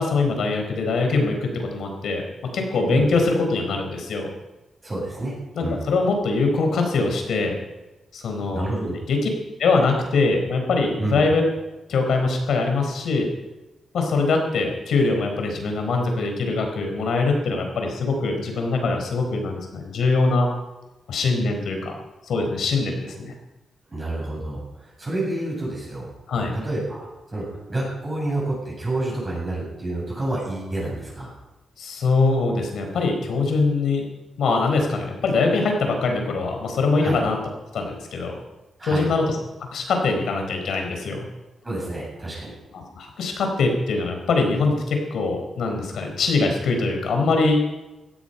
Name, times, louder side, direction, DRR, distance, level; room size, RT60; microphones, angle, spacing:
voice 1, 0.0-4.3 5.5-7.5 8.1-8.7 9.1-9.2 9.6-11.4 11.9-13.3 13.9-20.5 21.1-21.9 22.3-23.3 26.3-26.5 31.8-34.1 34.4-37.4 37.7-38.4 38.8-41.3 42.7-47.6, left 3 dB, 75° left, 3 dB, 4.2 m, -23 dB
voice 2, 4.8-5.3 5.6-5.8 8.5-9.0 10.9-11.2 23.9-26.1 26.5-31.3 37.0-37.2 38.8-39.1 41.6-42.5, right 2 dB, 20° right, -4 dB, 7.7 m, -29 dB
17.5 x 13.0 x 5.6 m, 1.0 s
wide cardioid pair, 150°, 0 cm